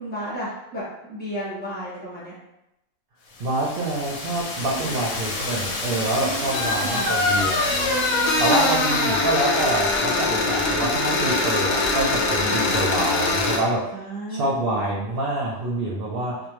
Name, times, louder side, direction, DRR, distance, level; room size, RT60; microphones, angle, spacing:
voice 1, 0.0-2.3 4.6-5.1 6.2-7.3 7.7-9.2 10.4-10.9 12.4-12.8 13.9-14.9 15.9-16.4, right 1 dB, 10° left, -7 dB, 0.7 m, -34 dB
sound 1, 3.3-9.8, left 2 dB, 90° left, 1.0 m, -31 dB
voice 2, 3.4-7.9 8.4-14.0 14.3-16.3, right 2 dB, 65° right, -4 dB, 0.6 m, -26 dB
sound 2, 6.5-13.6, left 3 dB, 65° left, 0.8 m, -23 dB
2.6 x 2.0 x 3.0 m, 0.87 s
omnidirectional pair, 1.4 m